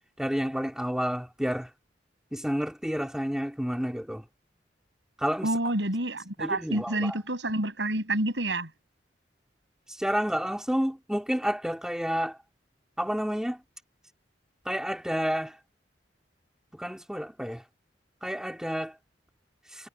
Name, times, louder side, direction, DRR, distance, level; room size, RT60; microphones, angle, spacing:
voice 1, 0.2-1.7 2.3-4.2 5.2-5.5 6.4-7.2 10.0-12.4 13.0-13.6 14.7-15.5 16.7-17.6 18.2-18.9, equal, 5° right, 2.7 m, -30 dB
voice 2, 5.4-8.7, right 1 dB, 80° right, 6.9 m, -28 dB
head